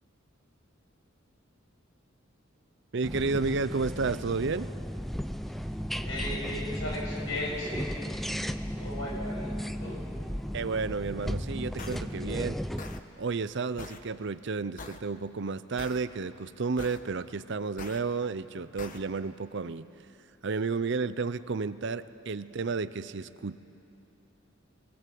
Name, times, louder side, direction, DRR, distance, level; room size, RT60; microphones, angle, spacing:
voice 1, 2.9-4.7 10.5-12.6 13.2-19.9 20.4-23.6, right 4 dB, 60° right, 14 dB, 0.6 m, -32 dB
sound 1, 3.0-13.0, equal, ahead, 0.5 m, -35 dB
voice 2, 6.0-7.9 8.7-10.0, left 1 dB, 70° left, -3 dB, 7.1 m, -36 dB
sound 2, 11.8-12.0 12.8-13.0 13.8-14.0 14.8-15.0 15.8-16.0 16.8-17.0 17.8-18.0 18.8-19.0, left 3 dB, 40° left, 1.2 m, -42 dB
26.5 x 20.0 x 7.7 m, 2.8 s
head